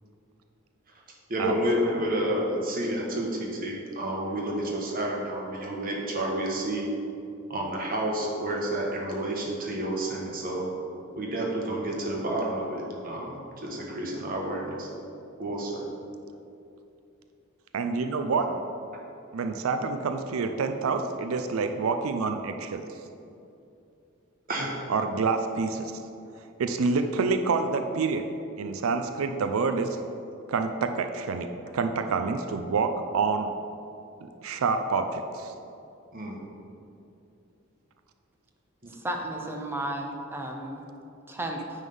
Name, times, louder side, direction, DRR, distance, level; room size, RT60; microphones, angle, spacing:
voice 1, 1.3-6.9 7.5-10.7 11.1-14.9 15.4-15.8 24.5-24.8 36.1-36.4 38.8-38.9, right 1 dB, 45° right, -2 dB, 1.3 m, -30 dB
voice 2, 17.7-18.5 19.3-22.8 24.9-25.9 26.6-28.2 28.6-30.0 30.5-31.5 31.7-33.5 34.4-35.5, right 4 dB, 80° right, 7 dB, 0.4 m, -27 dB
voice 3, 39.0-40.8 41.3-41.6, right 1 dB, 10° right, 2 dB, 0.7 m, -33 dB
9.3 x 3.7 x 5.4 m, 2.7 s
head